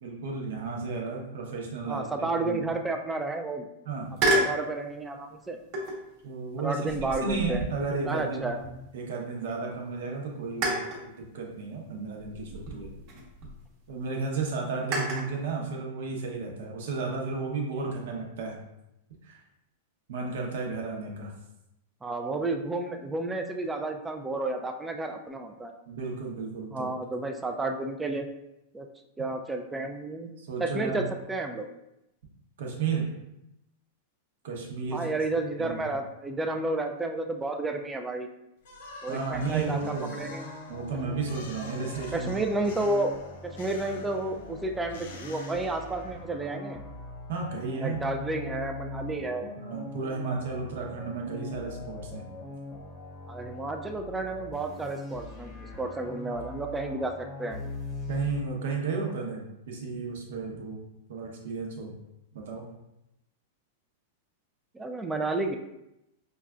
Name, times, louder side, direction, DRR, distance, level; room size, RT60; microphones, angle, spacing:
voice 1, 0.0-2.6 3.8-4.1 6.2-6.9 7.2-8.6 8.9-12.9 13.9-18.6 19.2-19.4 20.1-21.3 25.9-26.9 30.4-31.0 32.6-33.1 34.4-35.2 35.6-35.8 39.1-40.1 40.7-42.4 47.3-48.0 49.6-52.3 58.1-60.8 61.1-61.9 62.3-62.6, right 4 dB, 75° right, 0 dB, 0.8 m, -33 dB
voice 2, 1.9-3.7 4.3-5.6 6.6-7.6 8.0-8.6 22.0-25.7 26.7-28.3 28.7-28.9 29.2-30.3 30.6-31.7 34.9-38.3 39.0-40.5 42.1-43.1 43.4-46.8 47.8-49.5 53.3-57.6 64.7-65.6, right 2 dB, 10° right, 5 dB, 0.3 m, -31 dB
sound 1, 4.2-4.6 5.7-6.1 6.8-9.1 9.5-9.6 10.6-11.1 12.2-13.6 14.9-15.3, right 1 dB, 45° right, 0.9 m, -30 dB
sound 2, 38.6-46.3, left 3 dB, 70° left, 0.5 m, -48 dB
sound 3, 39.3-58.4, left 3 dB, 30° left, 0.8 m, -41 dB
5.0 x 2.3 x 2.4 m, 0.87 s
hypercardioid pair, 125°, 0 cm